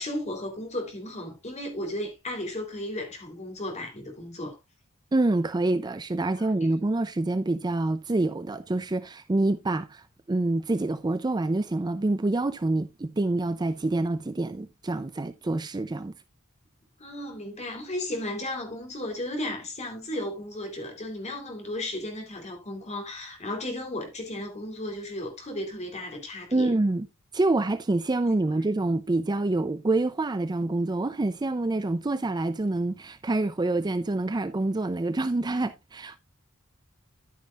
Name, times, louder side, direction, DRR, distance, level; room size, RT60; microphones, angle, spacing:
voice 1, 0.0-4.6 6.4-6.5 17.0-26.7, left 1 dB, 35° left, 3.4 m, -34 dB
voice 2, 5.1-16.1 26.5-27.1 27.3-36.2, right 2 dB, 20° right, 0.4 m, -26 dB
11.0 x 9.4 x 2.4 m
head